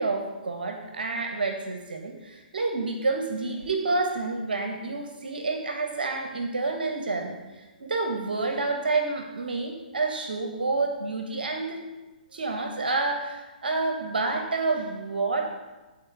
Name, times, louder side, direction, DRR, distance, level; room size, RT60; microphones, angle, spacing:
voice 1, 0.0-11.8 12.3-15.5, right 3 dB, 75° right, 4 dB, 1.0 m, -29 dB
11.0 x 4.1 x 4.7 m, 1.1 s
hypercardioid pair, 130°, 5 cm